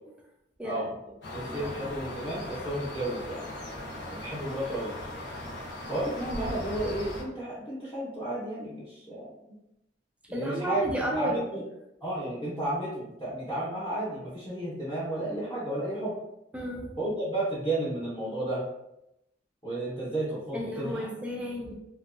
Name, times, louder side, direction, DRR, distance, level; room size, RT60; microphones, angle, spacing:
voice 1, 0.6-1.1 1.6-1.8 10.3-11.5 16.5-17.0 20.5-21.7, right 1 dB, 5° right, -1 dB, 0.3 m, -33 dB
sound 1, 1.2-7.2, left 1 dB, 70° left, 0.7 m, -38 dB
voice 2, 1.3-3.4 4.1-4.9 5.9-9.3 10.3-10.8 11.2-11.6 12.0-16.1 17.0-18.6 19.6-21.1, right 1 dB, 20° left, -10 dB, 0.8 m, -32 dB
2.6 x 2.2 x 2.4 m, 0.86 s
head